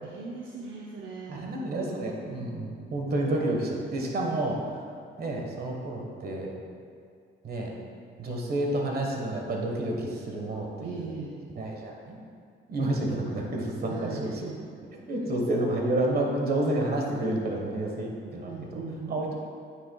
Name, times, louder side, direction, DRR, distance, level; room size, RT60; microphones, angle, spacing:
voice 1, 0.0-1.5 10.8-11.4 13.9-14.7 18.5-19.2, right 4 dB, 75° right, -3 dB, 0.7 m, -39 dB
voice 2, 1.3-4.6 5.2-6.5 7.4-7.7 8.2-11.1 11.6-12.2 12.7-14.4 14.9-18.8 19.1-19.3, right 1 dB, 50° right, 0 dB, 1.4 m, -30 dB
9.3 x 6.6 x 2.3 m, 2.2 s
cardioid pair, 90°, 20 cm